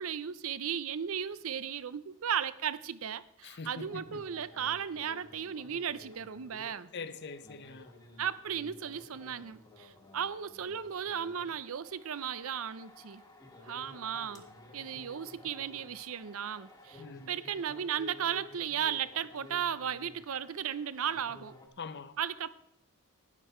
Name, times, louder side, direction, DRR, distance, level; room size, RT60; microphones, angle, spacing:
voice 1, 0.0-6.9 8.2-13.2 13.6-14.5 14.7-21.5 22.2-22.6, right 8 dB, 70° right, 0.6 m, -35 dB
voice 2, 3.4-4.2 6.9-7.9 17.0-17.3 21.8-22.2, left 4 dB, 50° left, 0.7 m, -43 dB
sound 1, 3.9-21.7, left 2 dB, 15° left, 1.5 m, -54 dB
12.0 x 10.0 x 4.4 m
head